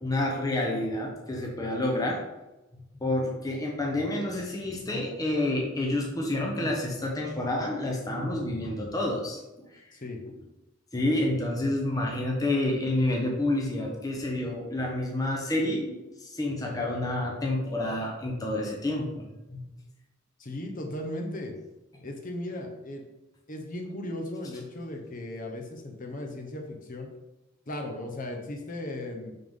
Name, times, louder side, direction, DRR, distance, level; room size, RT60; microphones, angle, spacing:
voice 1, 0.0-2.2 3.0-9.4 10.9-19.6, left 1 dB, 20° left, -1 dB, 0.9 m, -29 dB
voice 2, 20.4-21.5 22.0-23.0 23.5-27.1 27.7-29.4, left 1 dB, 40° left, 2 dB, 1.0 m, -36 dB
5.7 x 5.6 x 3.6 m, 1.0 s
head